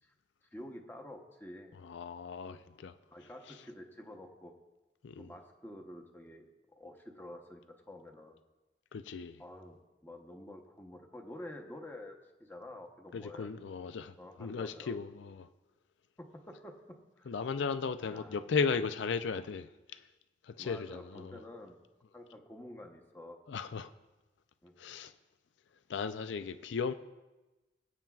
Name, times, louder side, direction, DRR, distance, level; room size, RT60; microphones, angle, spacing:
voice 1, 0.5-1.8 2.5-2.6 3.1-4.5 5.2-6.4 6.8-8.4 9.4-9.8 10.0-13.5 14.2-15.0 16.2-16.7 17.2-17.3 18.1-18.4 20.6-21.8 22.1-23.4 24.6-24.7, left 1 dB, 10° left, 2 dB, 0.8 m, -49 dB
voice 2, 1.7-2.9 5.0-5.3 8.9-9.4 13.1-14.1 14.4-15.5 17.3-20.0 20.4-21.4 23.5-23.9 24.8-25.1 25.9-26.9, left 5 dB, 80° left, 12 dB, 0.4 m, -36 dB
21.0 x 8.8 x 2.4 m, 1.1 s
head